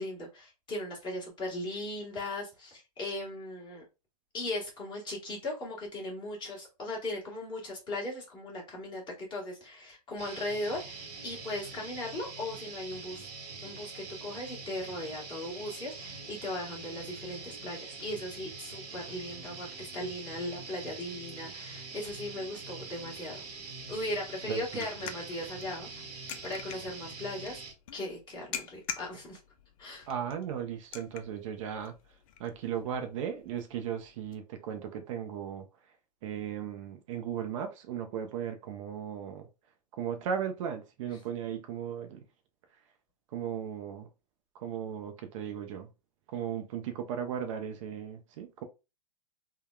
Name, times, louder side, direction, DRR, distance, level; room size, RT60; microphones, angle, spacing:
voice 1, 0.0-3.8 4.3-13.3 13.6-23.4 23.9-25.9 26.4-27.6 27.9-29.4 29.8-30.1, left 1 dB, 20° left, 1.3 m, -38 dB
sound 1, 10.2-27.7, right 4 dB, 75° right, 1.1 m, -44 dB
sound 2, 23.1-34.4, left 9 dB, 55° left, 0.5 m, -47 dB
voice 2, 24.5-24.8 30.1-31.9 32.4-35.7 36.2-39.5 40.0-42.2 43.3-44.1 44.6-45.9 46.3-48.6, right 8 dB, 50° right, 0.5 m, -36 dB
3.6 x 2.1 x 2.2 m
hypercardioid pair, 120°, 21 cm